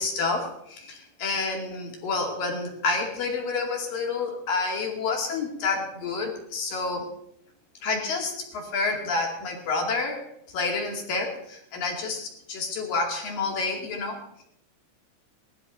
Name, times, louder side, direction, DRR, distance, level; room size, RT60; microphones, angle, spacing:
voice 1, 0.0-7.1 7.8-10.3 10.5-14.4, left 3 dB, 55° left, 1 dB, 3.7 m, -29 dB
19.5 x 12.5 x 5.3 m, 0.76 s
omnidirectional pair, 5.5 m